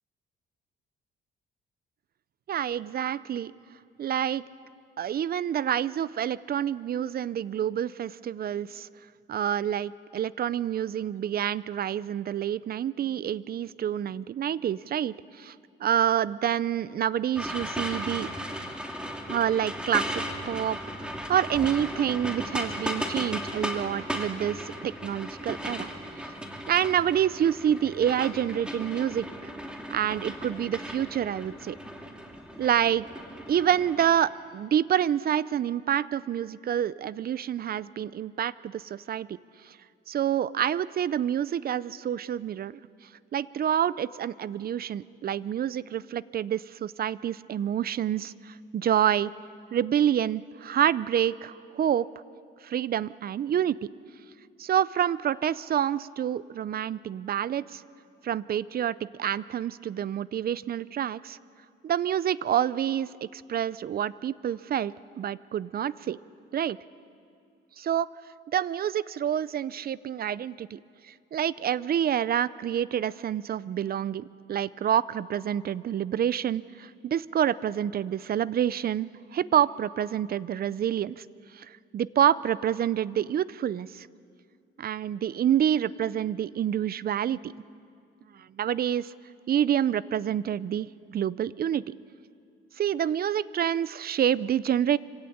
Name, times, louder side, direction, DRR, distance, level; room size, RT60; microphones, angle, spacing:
voice 1, 2.5-3.5 4.0-4.4 5.0-8.9 9.3-15.5 15.8-18.3 19.3-25.9 26.7-29.5 29.9-31.8 32.6-33.0 33.5-39.3 39.6-39.8 40.1-42.7 43.3-49.3 49.7-52.1 52.6-53.8 54.6-57.8 58.2-61.4 61.8-66.2 66.5-66.8 67.8-68.1 68.5-81.2 81.5-84.1 84.8-87.5 88.3-89.1 89.5-92.0 92.8-95.0, right 10 dB, 50° right, 19 dB, 0.5 m, -28 dB
sound 1, 17.4-34.1, equal, 5° right, 2.4 m, -36 dB
25.0 x 16.5 x 8.5 m, 2.4 s
cardioid pair, 90°, 20 cm